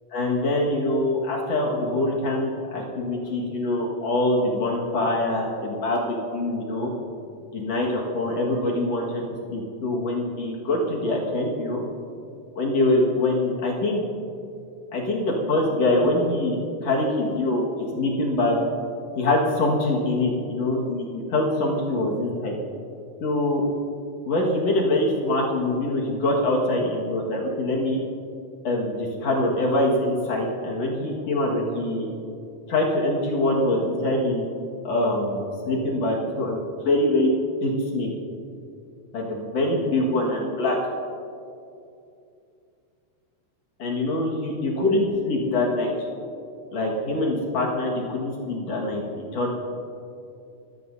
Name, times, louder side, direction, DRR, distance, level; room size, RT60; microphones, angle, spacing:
voice 1, 0.1-6.9 7.5-9.2 9.5-11.8 12.6-14.0 14.9-17.6 18.0-18.6 19.2-22.5 23.2-23.6 24.3-28.0 28.6-32.1 32.7-34.5 34.8-38.1 39.1-40.8 43.8-45.9 46.7-49.0 49.3-49.6, left 1 dB, 55° left, -2 dB, 1.8 m, -24 dB
26.5 x 15.5 x 2.8 m, 2.5 s
omnidirectional pair, 5.7 m